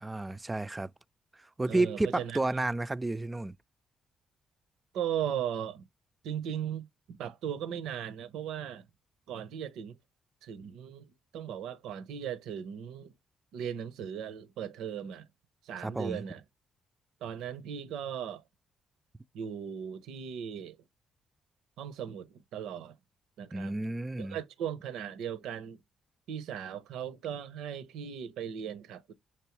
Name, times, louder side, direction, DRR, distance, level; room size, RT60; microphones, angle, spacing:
voice 1, 0.0-0.9 1.6-3.5 15.8-16.2 23.5-24.4, right 2 dB, 20° right, 0.3 m, -31 dB
voice 2, 1.7-2.4 4.9-5.9 6.2-8.9 9.3-10.0 10.4-13.1 13.5-15.3 15.6-16.4 17.2-18.4 19.3-20.8 21.8-23.0 23.4-23.9 24.2-25.8 26.3-29.1, right 9 dB, 80° right, 0.6 m, -37 dB
5.9 x 3.0 x 3.0 m
supercardioid pair, 55°, 0 cm